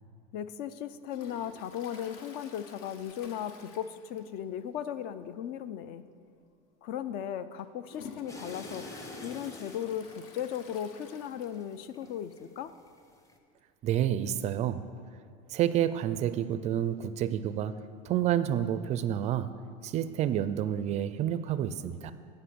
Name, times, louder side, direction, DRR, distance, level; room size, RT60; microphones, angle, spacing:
voice 1, 0.3-6.1 6.8-8.9 9.2-12.7, left 9 dB, 50° left, 14 dB, 0.5 m, -37 dB
Toilet flush, 1.1-4.5 4.8-4.9 5.3-5.4 6.3-6.4 6.9-11.8 12.2-12.3 12.4-12.5 13.6-13.7, left 5 dB, 70° left, 1.0 m, -51 dB
sound 1, 8.3-12.4 12.8-13.4, left 2 dB, 15° left, 0.8 m, -46 dB
voice 2, 13.8-14.9 15.5-19.6 19.8-22.1, right 10 dB, 35° right, 13 dB, 0.4 m, -29 dB
9.9 x 5.3 x 6.8 m, 2.2 s
supercardioid pair, 120°, 20 cm